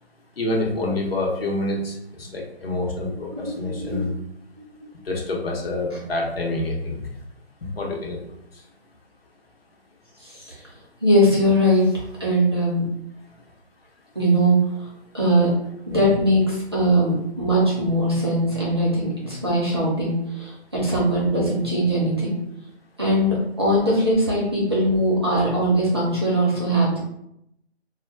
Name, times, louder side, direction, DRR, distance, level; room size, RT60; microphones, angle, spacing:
voice 1, 0.4-4.1 5.0-7.1 7.6-8.6, left 2 dB, 60° left, -1 dB, 0.8 m, -27 dB
voice 2, 3.3-4.1 4.8-4.9 10.2-10.7 11.0-11.9 12.2-12.8 14.1-14.9 15.1-15.5 15.9-22.3 23.0-27.0, right 1 dB, 25° right, -6 dB, 0.5 m, -21 dB
2.2 x 2.1 x 3.5 m, 0.79 s
figure-of-eight pair, 155°, 33 cm